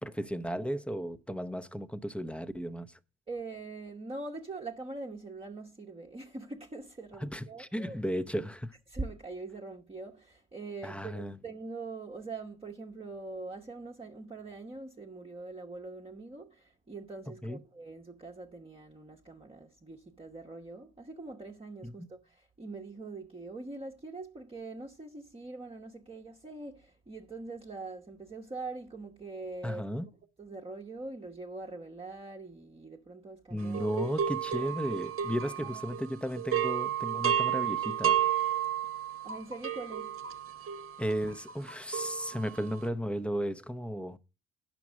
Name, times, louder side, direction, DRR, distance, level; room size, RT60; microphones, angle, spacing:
voice 1, 0.0-3.0 7.2-8.8 10.8-11.4 17.4-17.6 21.8-21.9 29.6-30.1 33.5-38.2 41.0-44.2, equal, 5° left, 0.7 m, -34 dB
voice 2, 3.3-8.0 8.9-30.0 30.4-33.9 34.5-34.7 35.6-35.8 39.2-40.1, right 3 dB, 20° right, 1.0 m, -43 dB
sound 1, 33.7-36.1 36.4-42.7, right 10 dB, 45° right, 1.1 m, -32 dB
10.5 x 6.0 x 6.2 m
cardioid pair, 90°, 30 cm